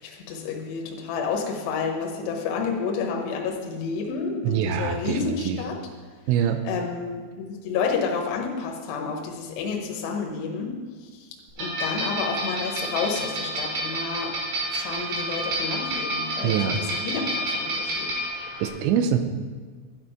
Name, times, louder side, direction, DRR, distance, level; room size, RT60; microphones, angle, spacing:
voice 1, 0.0-5.8 6.6-10.7 11.0-11.3 11.6-14.4 14.7-18.1, left 5 dB, 75° left, 0 dB, 3.3 m, -30 dB
voice 2, 4.4-5.6 6.3-6.6 16.4-16.8 18.3-19.2, right 8 dB, 85° right, 8 dB, 3.0 m, -24 dB
sound 1, 11.6-18.7, right 1 dB, 70° right, 4.7 m, -29 dB
12.0 x 9.0 x 5.1 m, 1.5 s
omnidirectional pair, 5.2 m